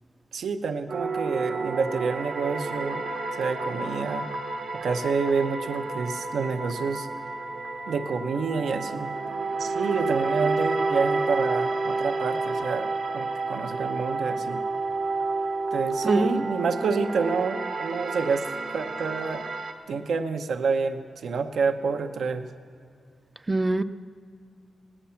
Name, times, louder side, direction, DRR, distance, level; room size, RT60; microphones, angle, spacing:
voice 1, 0.3-3.0 3.4-4.3 4.8-7.1 7.9-9.1 9.6-14.6 15.7-18.5 18.7-19.4 19.9-22.5, right 5 dB, 90° right, 6 dB, 0.8 m, -28 dB
sound 1, 0.9-19.7, right 3 dB, 65° right, 1.0 m, -30 dB
voice 2, 16.0-16.4 23.5-23.8, right 2 dB, 20° right, 12 dB, 0.4 m, -24 dB
17.5 x 9.9 x 5.7 m, 2.2 s
wide cardioid pair, 165°, 0 cm